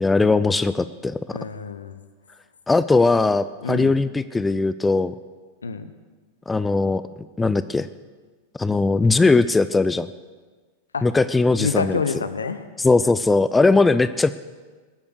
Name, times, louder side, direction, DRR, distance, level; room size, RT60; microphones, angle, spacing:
voice 1, 0.0-1.2 2.7-5.2 6.5-7.0 7.4-7.9 8.6-10.1 11.0-12.0 12.8-14.3, left 3 dB, 10° left, 14 dB, 0.5 m, -19 dB
voice 2, 1.3-2.0 3.6-4.0 5.6-5.9 10.9-11.0 11.6-12.7, left 5 dB, 75° left, 11 dB, 1.0 m, -27 dB
21.0 x 8.7 x 6.4 m, 1.4 s
figure-of-eight pair, 90°, 0 cm